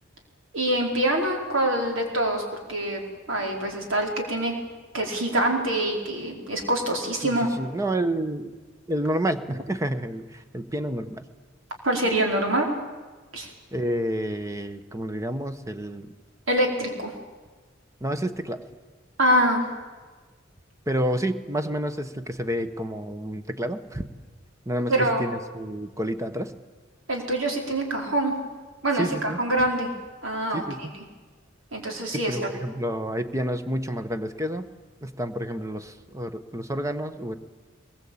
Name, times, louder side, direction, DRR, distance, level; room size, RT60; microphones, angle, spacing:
voice 1, 0.5-2.4 2.7-3.0 3.3-4.6 4.9-7.5 11.8-12.7 13.3-13.5 16.5-17.1 19.2-19.6 24.9-25.2 27.1-28.3 28.8-29.9 30.2-30.9 31.7-32.4, right 1 dB, 85° right, 2 dB, 4.6 m, -25 dB
voice 2, 7.2-8.6 8.9-11.3 13.7-16.1 18.0-18.6 20.9-24.1 24.7-26.5 28.9-29.4 30.5-31.0 32.3-34.7 35.0-37.3, right 1 dB, 15° right, 9 dB, 1.2 m, -29 dB
22.0 x 21.0 x 8.7 m, 1.3 s
head